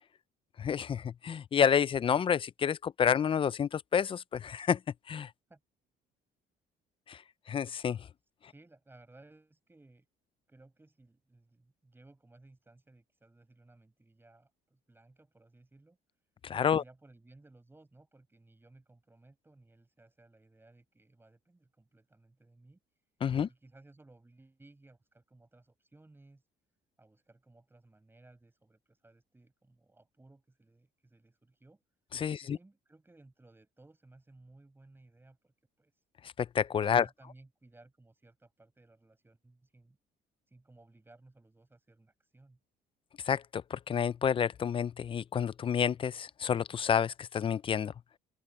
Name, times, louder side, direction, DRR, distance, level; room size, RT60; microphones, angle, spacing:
voice 1, 0.6-4.8 5.1-5.3 7.1-7.2 7.5-8.0 16.4-16.8 23.2-23.5 32.1-32.6 36.4-37.1 43.3-47.9, left 7 dB, 30° left, 0.4 m, -29 dB
voice 2, 8.4-10.1 10.5-16.0 16.8-22.8 23.5-26.4 27.0-31.8 32.4-35.9 37.0-40.0 40.5-42.6, right 2 dB, 15° right, 6.9 m, -60 dB
open air
cardioid pair, 110°, 17 cm